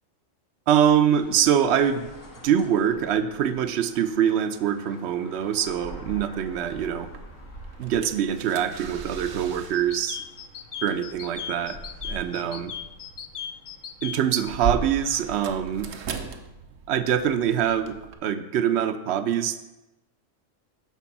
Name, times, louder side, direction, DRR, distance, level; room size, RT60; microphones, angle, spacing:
voice 1, 0.7-2.1 2.4-7.1 7.8-10.2 10.8-11.8 12.0-12.7 14.0-15.9 16.9-19.6, right 9 dB, 65° right, 10 dB, 0.9 m, -24 dB
sound 1, 1.1-15.9, equal, 80° left, 1.7 m, -46 dB
sound 2, 7.0-18.1, right 6 dB, 80° right, 1.1 m, -38 dB
sound 3, 9.7-14.4, left 8 dB, 60° left, 0.5 m, -37 dB
10.5 x 3.7 x 7.1 m, 0.99 s
omnidirectional pair, 1.3 m